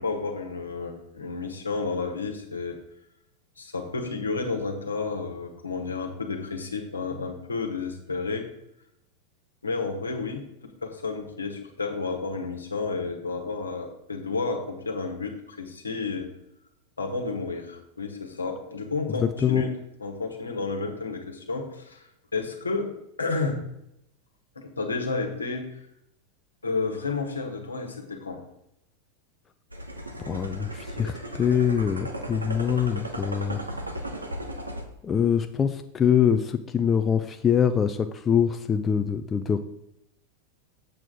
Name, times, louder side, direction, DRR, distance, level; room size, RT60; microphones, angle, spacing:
voice 1, 0.0-2.8 3.6-8.5 9.6-16.3 17.0-22.0 22.3-22.9 23.2-23.7 24.5-25.8 26.6-28.4, left 4 dB, 80° left, 3 dB, 1.4 m, -31 dB
sound 1, 29.7-34.9, right 1 dB, 85° right, 1.0 m, -36 dB
voice 2, 30.3-33.6 35.0-39.6, left 8 dB, 25° left, 8 dB, 0.5 m, -24 dB
7.8 x 7.5 x 3.9 m, 0.81 s
figure-of-eight pair, 90°, 0 cm